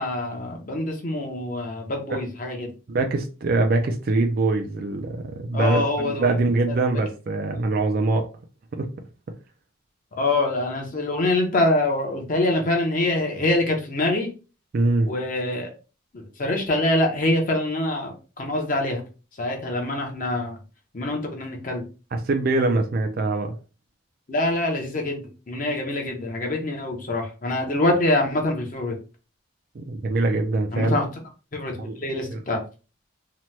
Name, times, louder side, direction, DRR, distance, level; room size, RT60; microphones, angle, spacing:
voice 1, 0.0-2.7 5.5-6.3 10.2-14.3 15.1-15.7 16.1-19.0 19.4-20.6 20.9-21.8 24.3-29.0 30.7-31.1 31.5-32.6, left 2 dB, 40° left, 2 dB, 0.6 m, -25 dB
voice 2, 2.9-8.3 8.7-8.9 14.7-15.1 22.1-23.5 29.7-31.0 31.8-32.0 32.3-32.4, right 2 dB, 45° right, 4 dB, 0.3 m, -23 dB
2.9 x 2.1 x 3.1 m, 0.33 s
head